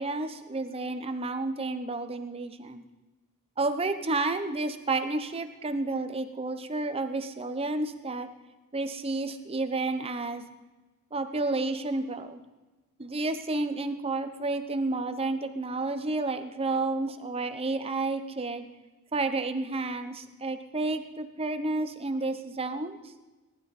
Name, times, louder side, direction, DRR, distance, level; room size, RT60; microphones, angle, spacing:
voice 1, 0.0-2.8 3.6-8.3 8.7-10.4 11.1-12.4 13.0-18.7 19.1-23.1, right 2 dB, 25° right, 9 dB, 0.9 m, -31 dB
18.5 x 12.0 x 4.2 m, 1.2 s
head